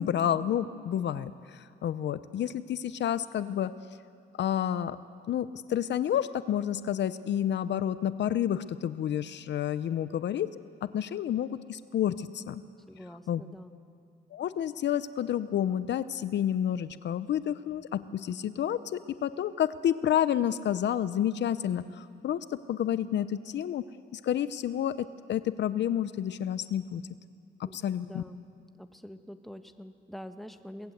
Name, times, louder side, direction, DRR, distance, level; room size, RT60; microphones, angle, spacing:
voice 1, 0.0-3.7 4.4-5.0 5.3-10.5 10.8-12.6 13.3-13.4 14.3-23.8 24.1-24.9 25.3-27.0 27.6-28.2, left 10 dB, 60° left, 14 dB, 0.7 m, -30 dB
voice 2, 12.9-13.8 27.6-28.4 28.7-30.9, equal, ahead, 8 dB, 1.3 m, -45 dB
23.0 x 19.0 x 8.0 m, 2.4 s
cardioid pair, 90°, 20 cm